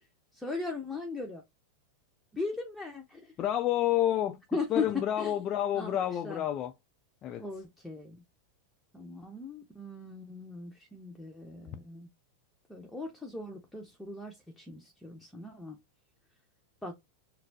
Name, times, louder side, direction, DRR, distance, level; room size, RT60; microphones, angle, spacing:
voice 1, 0.3-1.4 2.3-3.3 4.5-5.3 5.7-6.0 6.2-6.4 7.4-8.2 8.9-12.1 12.7-15.8 16.8-16.9, left 3 dB, 5° left, 0.8 m, -38 dB
voice 2, 3.4-4.4 4.7-6.7 7.2-7.5, left 11 dB, 40° left, 0.4 m, -29 dB
4.1 x 2.0 x 2.7 m
hypercardioid pair, 105°, 0 cm